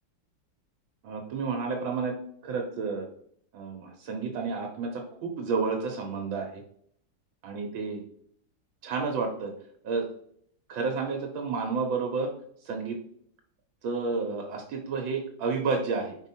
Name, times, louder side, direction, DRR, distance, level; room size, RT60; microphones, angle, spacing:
voice 1, 1.0-2.2 2.4-3.1 3.5-6.6 7.4-8.0 8.8-9.5 9.8-10.0 10.7-12.3 12.7-13.0 13.8-16.2, right 4 dB, 80° right, 2 dB, 1.8 m, -30 dB
5.2 x 4.5 x 4.3 m, 0.65 s
omnidirectional pair, 2.1 m